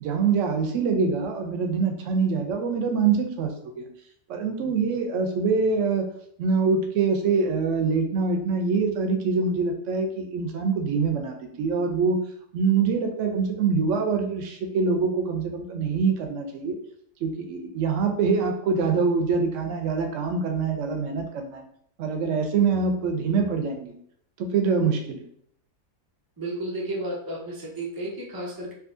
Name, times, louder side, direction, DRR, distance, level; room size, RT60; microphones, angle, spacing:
voice 1, 0.0-3.9 4.3-6.1 6.4-12.2 12.5-16.8 17.2-21.6 22.0-23.9 24.4-25.2, right 5 dB, 70° right, 4 dB, 0.9 m, -24 dB
voice 2, 26.4-28.7, right 1 dB, 35° right, -2 dB, 0.4 m, -32 dB
3.6 x 2.6 x 2.5 m, 0.67 s
omnidirectional pair, 1.4 m